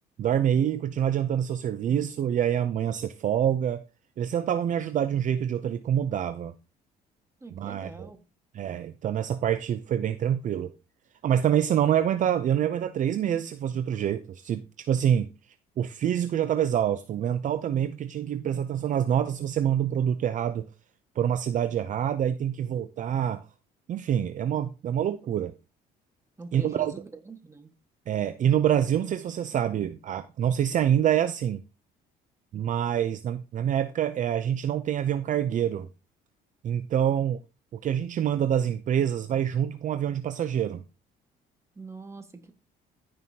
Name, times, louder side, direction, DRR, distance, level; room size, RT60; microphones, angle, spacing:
voice 1, 0.2-3.8 4.2-6.5 7.6-8.1 8.5-10.7 11.2-15.3 15.8-20.7 21.2-23.4 23.9-25.5 26.5-26.9 28.1-31.6 32.5-35.9 36.6-37.4 37.7-40.8, right 9 dB, 50° right, 0.6 m, -26 dB
voice 2, 7.4-8.2 26.4-27.7 41.7-42.5, right 3 dB, 15° right, 1.6 m, -43 dB
15.0 x 5.6 x 2.8 m
cardioid pair, 110°, 17 cm